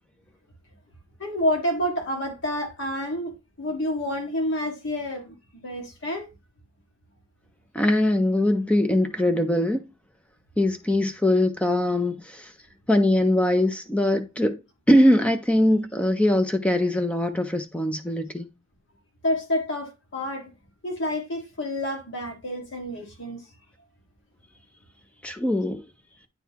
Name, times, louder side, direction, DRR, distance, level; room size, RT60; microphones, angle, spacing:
voice 1, 1.2-6.3 19.2-20.5 20.8-23.4, left 1 dB, 60° left, 1.7 m, -29 dB
voice 2, 7.7-9.8 10.6-12.5 12.9-14.6 14.9-18.5 25.2-25.8, left 1 dB, 5° left, 0.5 m, -22 dB
9.2 x 3.8 x 2.9 m
head